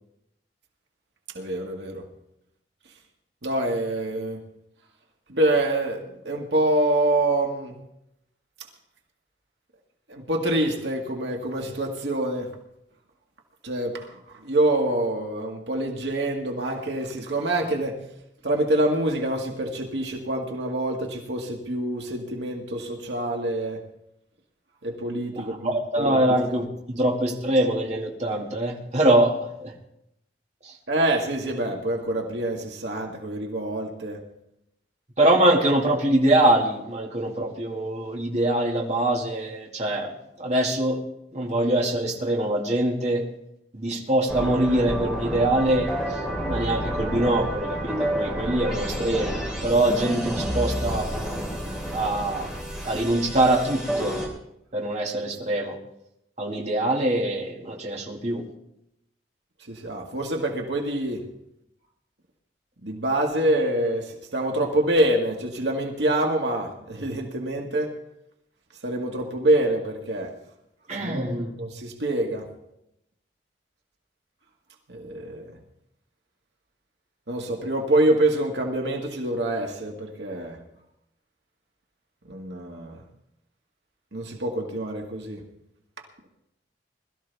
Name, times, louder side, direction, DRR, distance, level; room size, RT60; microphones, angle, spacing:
voice 1, 1.3-2.0 3.4-4.4 5.3-7.8 10.1-12.5 13.6-18.0 18.4-23.8 24.8-26.2 30.9-34.2 59.7-61.2 62.8-67.9 68.8-70.3 71.0-72.5 74.9-75.5 77.3-80.6 82.3-83.0 84.1-85.4, right 1 dB, 85° right, 1 dB, 2.0 m, -26 dB
voice 2, 25.3-29.7 30.6-30.7 35.2-40.1 40.4-41.0 41.3-43.2 43.7-46.2 46.5-51.1 51.9-52.5 52.8-54.2 54.7-55.8 56.4-58.4 70.9-71.5, right 1 dB, 40° right, -1 dB, 2.3 m, -23 dB
sound 1, 44.3-54.3, equal, 5° right, 3.5 m, -30 dB
21.5 x 13.5 x 3.5 m, 0.81 s
head